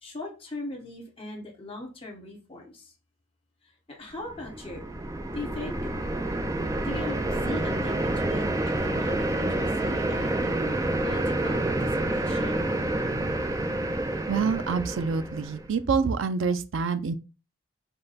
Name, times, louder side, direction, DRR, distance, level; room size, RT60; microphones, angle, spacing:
voice 1, 0.0-2.9 3.9-4.9 5.3-5.8 6.8-8.0 8.2-8.5 8.8-10.6 11.0-12.6, left 2 dB, 30° left, 1.3 m, -39 dB
sound 1, 4.3-15.7, right 1 dB, 15° right, 0.4 m, -28 dB
voice 2, 14.3-17.1, right 5 dB, 80° right, 0.5 m, -26 dB
5.4 x 2.2 x 4.0 m
head